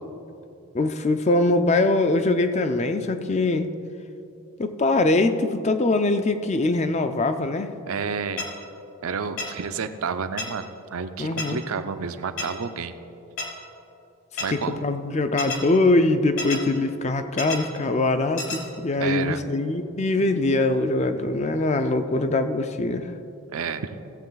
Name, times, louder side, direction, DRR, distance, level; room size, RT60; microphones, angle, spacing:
voice 1, 0.7-3.7 4.6-7.7 11.2-11.6 14.5-23.1, left 2 dB, 30° left, 9 dB, 0.4 m, -22 dB
voice 2, 7.9-8.5 9.0-13.0 14.4-14.8 19.0-19.4 23.5-23.9, right 5 dB, 75° right, 9 dB, 0.5 m, -30 dB
sound 1, 8.4-8.5 9.4-9.5 10.4-10.5 11.4-11.5 12.4-12.5 13.4-13.5 14.4-14.5 15.4-15.6 16.4-16.6 17.4-17.6 18.4-18.6, left 3 dB, 60° left, 1.7 m, -29 dB
15.5 x 7.4 x 4.0 m, 2.7 s
head